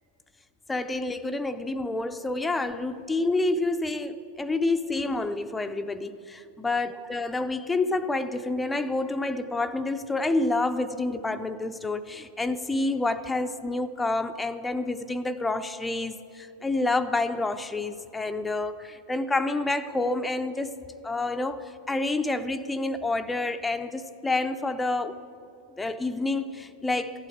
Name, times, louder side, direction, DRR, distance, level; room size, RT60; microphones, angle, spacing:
voice 1, 0.7-20.8 21.0-25.2 25.7-27.3, left 2 dB, 10° left, 9 dB, 0.5 m, -28 dB
14.5 x 9.0 x 8.3 m, 2.7 s
figure-of-eight pair, 90°, 0 cm